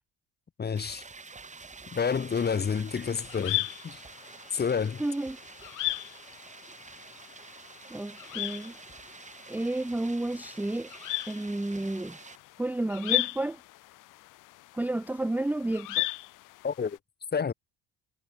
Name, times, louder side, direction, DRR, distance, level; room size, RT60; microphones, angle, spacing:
voice 1, 0.6-1.0 1.9-4.0 4.5-5.0 16.6-17.0 17.3-17.5, left 6 dB, 30° left, 1.6 m, -29 dB
sound 1, 0.8-12.4, right 4 dB, 20° right, 2.8 m, -48 dB
sound 2, 2.7-17.0, left 18 dB, 65° left, 0.7 m, -37 dB
voice 2, 5.0-5.4 7.9-8.7 9.5-10.9 11.3-12.2 12.6-13.6 14.7-16.1, right 2 dB, 5° right, 0.7 m, -31 dB
cardioid pair, 100°, 35 cm